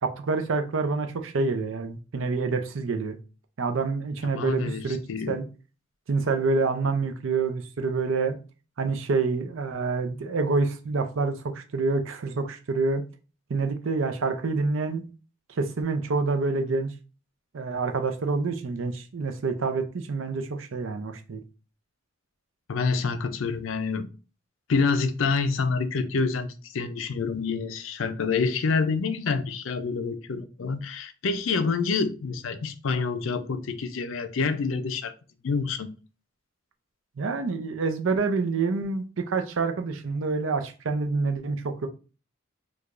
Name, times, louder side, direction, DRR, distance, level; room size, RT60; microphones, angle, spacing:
voice 1, 0.0-3.2 3.6-5.0 5.3-5.4 6.1-8.4 8.8-13.0 13.5-15.0 15.6-16.9 17.5-21.4 37.2-41.9, right 4 dB, 75° right, 0.5 m, -27 dB
voice 2, 4.3-4.8 5.1-5.4 22.7-24.1 24.7-35.1 35.4-35.9, left 4 dB, 70° left, 0.5 m, -27 dB
4.7 x 2.3 x 2.5 m
head